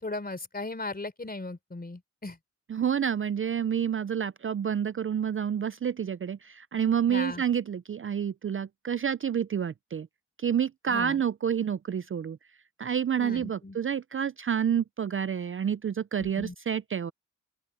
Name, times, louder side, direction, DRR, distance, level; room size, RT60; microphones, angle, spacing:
voice 1, 0.0-2.4 7.1-7.4 10.9-11.2 13.2-13.8 16.2-16.5, left 2 dB, 30° left, 4.0 m, -37 dB
voice 2, 2.7-10.1 10.4-12.4 12.8-17.1, right 8 dB, 45° right, 0.4 m, -29 dB
open air
wide cardioid pair, 95°, 31 cm